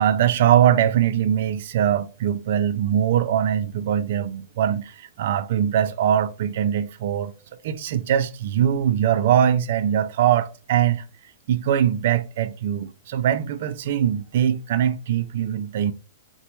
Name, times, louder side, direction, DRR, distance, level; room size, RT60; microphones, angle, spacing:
voice 1, 0.0-7.3 7.6-11.0 11.5-15.9, right 10 dB, 60° right, 0.3 m, -22 dB
2.9 x 2.2 x 2.9 m
hypercardioid pair, 125°, 0 cm